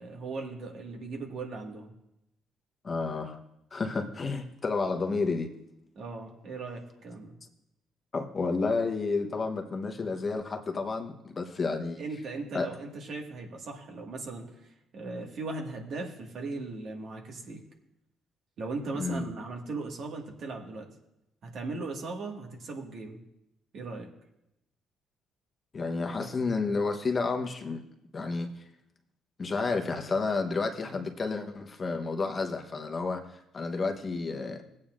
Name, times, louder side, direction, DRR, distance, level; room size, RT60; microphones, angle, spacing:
voice 1, 0.0-1.9 6.0-7.4 12.0-17.6 18.6-20.9 21.4-23.2 23.7-24.1, right 3 dB, 60° right, 1 dB, 1.8 m, -38 dB
voice 2, 2.8-3.4 3.7-5.5 8.1-12.0 12.5-12.7 18.9-19.2 25.7-27.8 28.1-28.6 29.4-34.6, left 4 dB, 35° left, 4 dB, 1.1 m, -31 dB
18.0 x 8.6 x 2.5 m, 0.86 s
cardioid pair, 100°, 0 cm